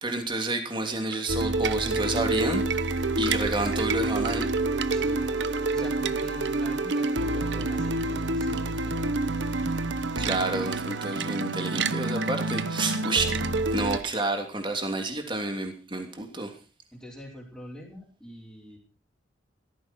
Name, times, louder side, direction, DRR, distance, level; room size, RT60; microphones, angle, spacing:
voice 1, 0.0-2.8 3.2-4.5 10.2-13.4 13.7-16.5, right 2 dB, 25° right, 5 dB, 3.1 m, -29 dB
sound 1, 1.1-6.6 6.9-8.0 8.5-8.7 8.9-9.2 9.6-14.4, right 9 dB, 65° right, 0.8 m, -36 dB
sound 2, 1.3-14.0, right 2 dB, 85° right, 1.4 m, -28 dB
voice 2, 4.9-5.3 5.7-9.1 16.9-18.8, equal, 5° left, -4 dB, 4.8 m, -43 dB
16.5 x 14.5 x 4.5 m, 0.34 s
head